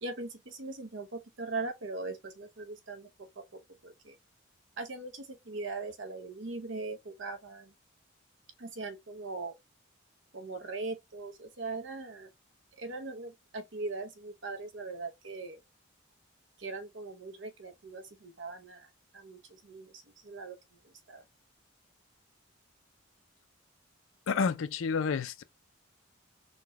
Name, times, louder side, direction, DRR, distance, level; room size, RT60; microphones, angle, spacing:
voice 1, 0.0-4.2 4.8-7.7 8.6-9.5 10.3-12.3 12.8-15.6 16.6-18.9 19.1-20.6 20.8-21.2, right 3 dB, 65° right, 0.8 m, -40 dB
voice 2, 24.3-25.4, left 5 dB, 80° left, 0.4 m, -29 dB
3.9 x 2.2 x 2.9 m
head